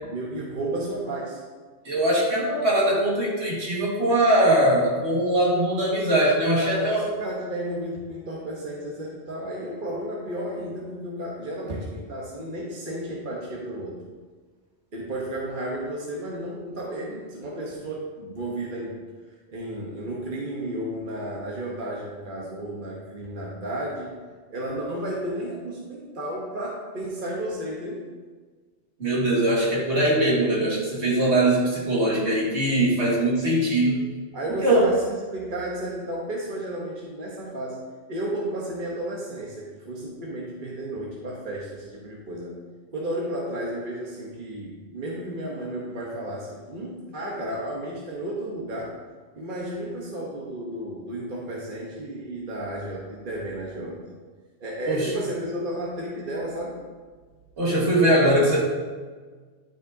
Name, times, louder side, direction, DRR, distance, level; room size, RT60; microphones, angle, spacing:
voice 1, 0.0-1.4 6.6-14.0 14.9-19.0 19.5-24.1 24.5-28.1 34.3-42.6 42.9-48.9 49.3-54.0 54.6-56.8, right 1 dB, 45° right, -3 dB, 1.2 m, -33 dB
voice 2, 1.9-7.0 29.0-34.0 34.6-34.9 54.9-55.1 57.6-58.6, right 1 dB, 60° right, -5 dB, 2.1 m, -21 dB
12.0 x 5.0 x 2.7 m, 1.5 s
omnidirectional pair, 1.3 m